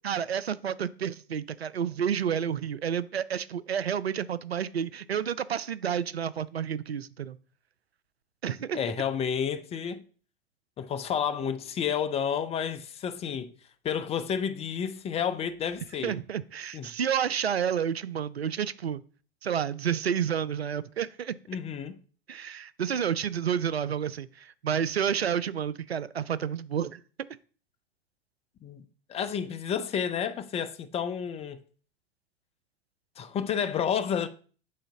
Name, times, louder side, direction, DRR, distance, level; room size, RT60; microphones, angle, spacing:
voice 1, 0.0-7.4 8.4-8.8 16.0-19.0 19.4-21.3 22.3-27.0, right 8 dB, 80° right, 0.5 m, -30 dB
voice 2, 8.7-10.0 10.8-13.5 13.8-16.1 16.7-16.9 21.5-22.0 28.6-28.8 29.1-31.6 33.2-34.3, left 7 dB, 20° left, 0.6 m, -30 dB
8.5 x 3.9 x 4.8 m
figure-of-eight pair, 90°, 31 cm